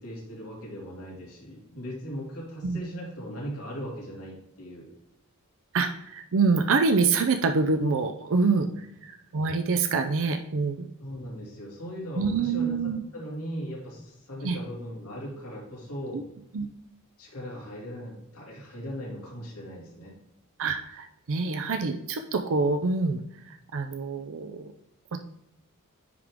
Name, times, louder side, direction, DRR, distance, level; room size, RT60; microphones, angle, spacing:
voice 1, 0.0-4.9 8.7-8.8 11.0-16.2 17.2-20.1, equal, 70° left, -3 dB, 2.4 m, -38 dB
voice 2, 5.7-10.9 12.2-13.0 14.4-14.6 16.1-16.2 16.5-16.7 20.6-23.2 23.5-24.7, right 4 dB, 60° right, 6 dB, 0.5 m, -26 dB
9.5 x 3.7 x 3.5 m, 0.84 s
head